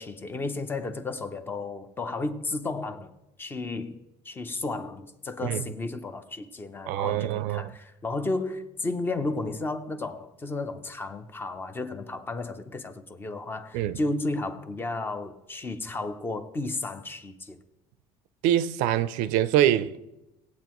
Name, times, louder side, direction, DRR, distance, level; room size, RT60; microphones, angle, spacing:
voice 1, 0.0-3.1 3.4-17.6, left 2 dB, 15° left, 0.7 m, -33 dB
voice 2, 6.9-7.7 13.7-14.0 18.4-20.0, right 11 dB, 80° right, 0.5 m, -24 dB
19.0 x 8.4 x 3.0 m
cardioid pair, 155°, 13 cm